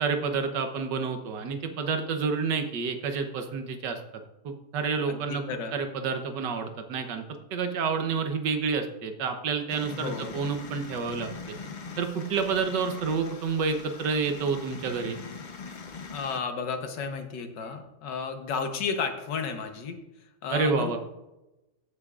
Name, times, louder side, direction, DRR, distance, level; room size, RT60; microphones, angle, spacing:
voice 1, 0.0-4.0 4.4-5.4 5.7-7.2 7.5-11.3 12.0-15.2 20.5-21.0, right 5 dB, 85° right, 6 dB, 1.6 m, -29 dB
voice 2, 5.1-5.7 9.9-10.3 16.1-20.0 20.4-21.0, left 5 dB, 85° left, 6 dB, 1.7 m, -33 dB
sound 1, 9.7-16.4, left 4 dB, 60° left, 0.5 m, -42 dB
14.5 x 7.4 x 2.4 m, 0.96 s
omnidirectional pair, 1.8 m